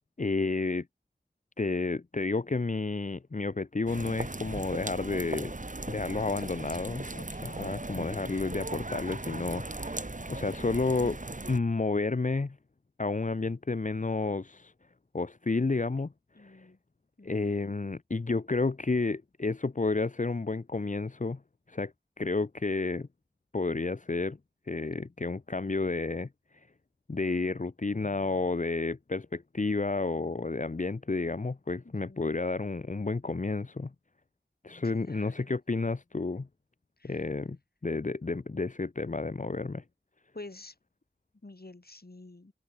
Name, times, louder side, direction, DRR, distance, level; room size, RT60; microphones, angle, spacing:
voice 1, 0.2-0.9 1.6-5.5 5.9-7.2 7.4-11.2 11.5-12.6 13.0-14.7 15.1-16.1 16.4-16.7 17.2-21.4 21.7-21.9 22.2-23.1 23.5-24.4 24.7-26.7 27.1-33.9 34.6-36.5 37.0-37.6 37.8-39.8, left 3 dB, 45° left, 0.7 m, -31 dB
sound 1, 3.9-11.6, right 2 dB, 45° right, 2.0 m, -38 dB
voice 2, 6.2-6.8 7.1-7.7 16.4-16.8 17.2-17.3 31.8-32.3 34.8-35.5 37.0-37.2 40.3-40.7 41.4-42.5, left 2 dB, 65° left, 5.6 m, -49 dB
wide cardioid pair, 45°, 17 cm